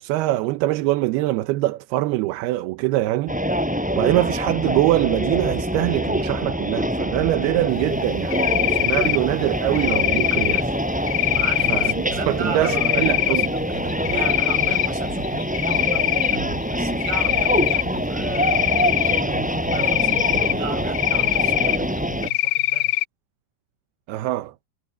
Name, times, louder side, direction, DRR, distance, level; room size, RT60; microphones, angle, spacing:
voice 1, 0.0-3.4 4.0-10.7 11.7-13.5 24.1-24.5, right 17 dB, 85° right, 2.8 m, -23 dB
sound 1, 3.3-22.3, equal, ahead, 6.3 m, -25 dB
Cricket, 8.3-9.2 9.8-10.6 11.1-11.9 12.6-13.5 13.9-14.9 15.2-16.4 17.0-17.8 18.3-19.2 19.7-20.5 20.9-21.8 22.2-23.0, left 16 dB, 80° left, 1.7 m, -22 dB
voice 2, 11.3-22.9, right 5 dB, 70° right, 8.0 m, -36 dB
omnidirectional pair, 4.5 m